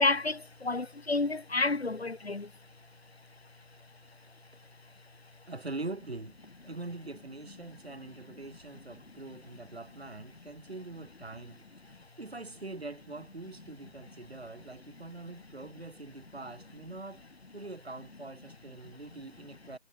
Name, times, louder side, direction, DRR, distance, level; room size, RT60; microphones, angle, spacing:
voice 1, 0.0-2.5, left 3 dB, 60° left, 2.4 m, -29 dB
voice 2, 5.5-6.4 6.6-11.7 12.2-17.2 17.5-19.8, right 2 dB, 60° right, 3.8 m, -43 dB
figure-of-eight pair, 175°, 35 cm